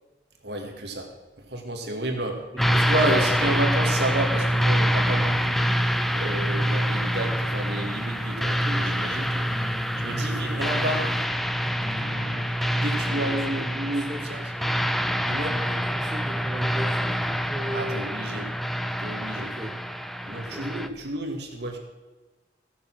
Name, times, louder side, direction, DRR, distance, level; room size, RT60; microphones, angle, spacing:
voice 1, 0.4-1.1 1.4-2.4 2.7-5.6 6.1-9.5 10.0-11.1 12.7-14.7 15.2-15.6 17.7-18.5 19.0-19.5 20.2-21.8, right 1 dB, 65° right, 1 dB, 2.1 m, -30 dB
voice 2, 2.0-3.5 10.2-11.0 12.9-13.7 14.0-14.4 15.5-18.1 19.3-19.8 20.3-20.9, equal, 20° right, 0 dB, 1.1 m, -38 dB
sound 1, 2.6-20.9, equal, ahead, 0.4 m, -26 dB
sound 2, 6.5-12.6, left 1 dB, 70° left, 2.0 m, -41 dB
15.0 x 7.0 x 6.2 m, 1.2 s
head